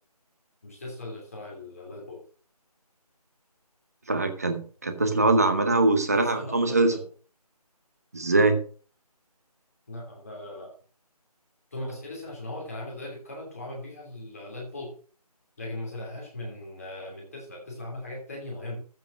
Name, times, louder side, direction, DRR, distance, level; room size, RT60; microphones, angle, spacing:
voice 1, 0.6-2.3 6.1-7.0 9.9-10.7 11.7-15.0 15.6-18.8, left 1 dB, 25° left, -2 dB, 2.9 m, -38 dB
voice 2, 4.1-6.9 8.1-8.6, right 2 dB, 25° right, 6 dB, 1.1 m, -22 dB
14.0 x 5.2 x 6.2 m, 0.40 s
figure-of-eight pair, 175°, 20 cm